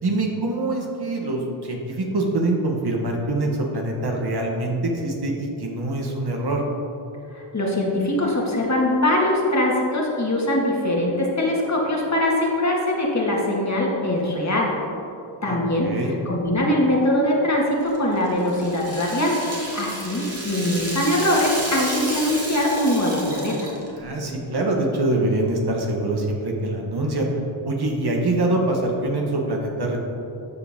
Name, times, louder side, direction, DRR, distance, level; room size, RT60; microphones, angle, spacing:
voice 1, 0.0-6.6 15.4-15.6 15.8-16.1 23.9-27.3 27.6-30.0, right 2 dB, 55° right, 0 dB, 1.4 m, -24 dB
voice 2, 7.3-14.7 15.4-15.9 16.3-23.7, left 1 dB, 35° left, -2 dB, 1.9 m, -22 dB
Rattle (instrument), 17.8-24.0, right 1 dB, 30° right, 2.0 m, -32 dB
13.5 x 4.9 x 3.6 m, 2.8 s
cardioid pair, 55°, 48 cm